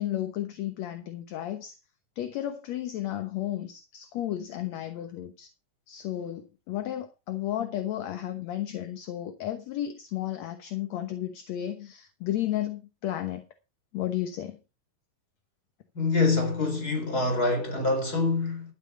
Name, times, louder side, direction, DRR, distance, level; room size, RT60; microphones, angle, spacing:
voice 1, 0.0-1.8 2.2-5.5 5.9-13.5 13.9-14.6, left 12 dB, 65° left, 2.0 m, -33 dB
voice 2, 15.9-18.7, left 3 dB, 25° left, 4.2 m, -25 dB
12.5 x 9.8 x 4.8 m
omnidirectional pair, 4.1 m